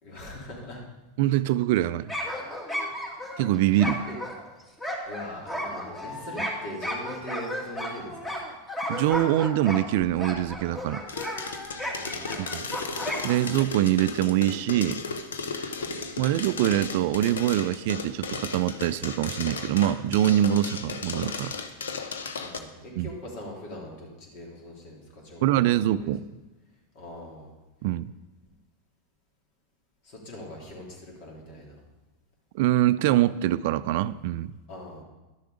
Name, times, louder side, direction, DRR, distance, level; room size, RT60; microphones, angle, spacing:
voice 1, 0.0-0.8 3.7-4.2 5.1-8.4 11.7-12.6 15.8-16.0 22.3-26.1 26.9-27.5 30.0-31.7 34.7-35.0, left 1 dB, 55° left, -2 dB, 3.3 m, -42 dB
voice 2, 1.2-2.1 3.4-4.0 8.9-11.0 12.4-12.7 13.2-15.0 15.6-15.7 16.2-21.5 23.0-23.1 25.4-26.2 27.8-28.1 32.5-34.5, right 13 dB, 60° right, 15 dB, 0.4 m, -24 dB
sound 1, 2.1-13.6, equal, 15° left, 2.1 m, -34 dB
sound 2, 11.1-22.6, left 5 dB, 85° left, 0.8 m, -35 dB
11.5 x 6.8 x 5.0 m, 1.1 s
hypercardioid pair, 100°, 0 cm